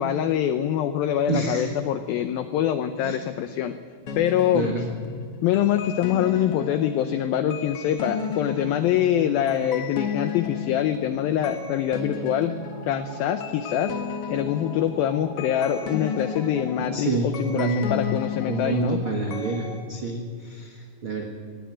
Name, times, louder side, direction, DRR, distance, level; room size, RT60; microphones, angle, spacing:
voice 1, 0.0-3.8 4.2-4.7 5.4-12.5 12.8-13.9 14.3-19.0, left 10 dB, 85° left, 10 dB, 2.1 m, -24 dB
voice 2, 1.3-1.7 3.0-3.2 4.5-4.9 16.8-18.0 18.4-21.2, right 3 dB, 75° right, 2 dB, 1.2 m, -28 dB
sound 1, 4.1-19.8, left 6 dB, 55° left, 1.6 m, -34 dB
17.5 x 16.5 x 9.4 m, 2.2 s
omnidirectional pair, 5.2 m